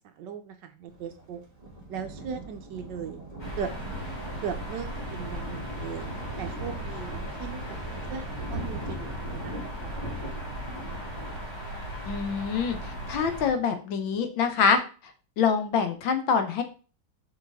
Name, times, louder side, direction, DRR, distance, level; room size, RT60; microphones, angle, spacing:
voice 1, 0.0-1.4 1.9-3.2 3.6-3.7 4.4-6.1 6.4-10.0, right 7 dB, 70° right, 8 dB, 1.2 m, -38 dB
Thunder, 0.9-13.2, right 1 dB, 20° right, 2.0 m, -41 dB
sound 1, 3.4-13.5, equal, 20° left, 2.0 m, -37 dB
voice 2, 12.1-14.8 15.4-16.6, left 6 dB, 75° left, 8 dB, 1.6 m, -25 dB
6.6 x 5.0 x 3.6 m, 0.36 s
omnidirectional pair, 2.2 m